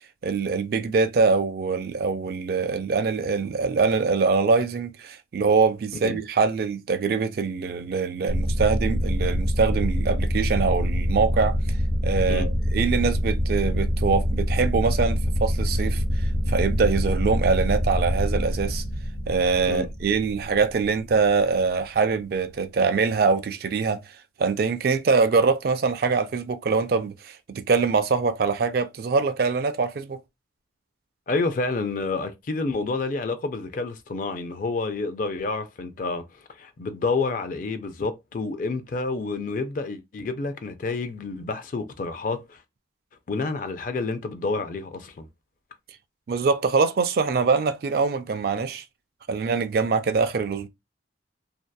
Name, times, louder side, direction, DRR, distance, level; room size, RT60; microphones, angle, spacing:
voice 1, 0.2-11.6 12.0-18.8 19.3-24.0 24.4-30.2 46.3-48.8 49.3-50.7, right 4 dB, 50° right, 0.3 m, -23 dB
sound 1, 8.3-21.5, equal, 70° left, 1.0 m, -25 dB
voice 2, 31.3-42.6 43.3-45.3, left 3 dB, 45° left, 0.4 m, -29 dB
2.7 x 2.2 x 2.2 m
head